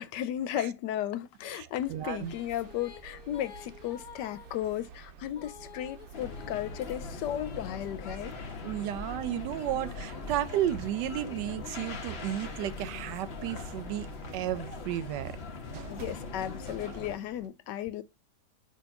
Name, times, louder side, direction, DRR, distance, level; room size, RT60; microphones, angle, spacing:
voice 1, 0.0-8.3 15.9-18.0, left 11 dB, 85° left, 1.3 m, -35 dB
voice 2, 1.5-2.3 8.6-15.3, right 12 dB, 85° right, 1.2 m, -33 dB
Female singing, 1.7-8.4 9.1-12.8, left 8 dB, 65° left, 1.4 m, -53 dB
sound 1, 1.8-17.5, right 8 dB, 70° right, 0.9 m, -52 dB
sound 2, 6.1-17.2, left 3 dB, 50° left, 0.9 m, -41 dB
6.4 x 2.8 x 5.6 m
omnidirectional pair, 1.8 m